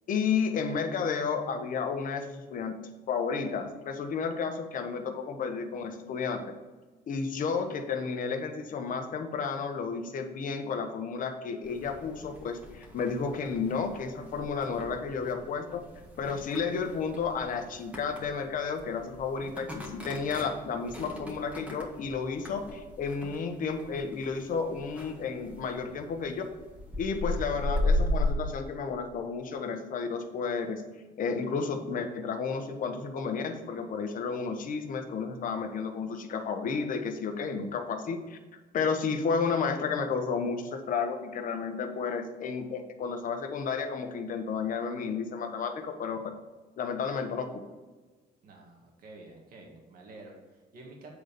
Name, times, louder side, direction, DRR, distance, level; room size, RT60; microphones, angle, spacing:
voice 1, 0.1-2.7 3.1-6.6 7.1-15.8 16.2-26.4 27.0-30.8 31.2-38.4 38.7-46.2 46.8-47.6, left 5 dB, 55° left, 5 dB, 1.2 m, -32 dB
sound 1, 11.6-28.3, left 1 dB, 10° right, 1.7 m, -36 dB
voice 2, 48.4-51.1, right 2 dB, 60° right, 0 dB, 2.1 m, -49 dB
8.4 x 4.0 x 6.8 m, 1.3 s
cardioid pair, 110°, 17 cm